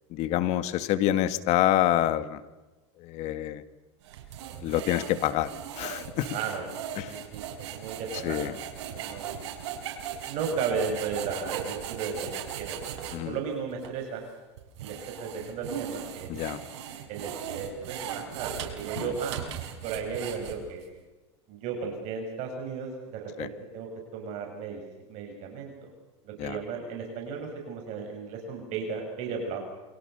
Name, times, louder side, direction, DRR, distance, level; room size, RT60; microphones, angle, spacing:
voice 1, 0.1-2.4 3.0-3.6 4.6-5.5 5.8-6.3 7.0-7.1 8.2-8.5 13.1-13.3 16.3-16.6 19.0-19.1 23.4-23.5 26.4-26.6, left 13 dB, 50° left, 13 dB, 1.9 m, -27 dB
sound 1, 4.0-13.2 13.8-13.9 14.6-20.8, right 9 dB, 80° right, 5.8 m, -38 dB
voice 2, 6.2-6.7 7.1-8.4 8.9-9.3 10.3-12.3 12.6-14.2 14.8-16.3 17.1-19.4 19.8-20.8 21.5-24.8 25.1-25.7 26.2-29.7, right 5 dB, 50° right, 2 dB, 7.0 m, -35 dB
28.5 x 24.5 x 6.9 m, 1.1 s
supercardioid pair, 135°, 15 cm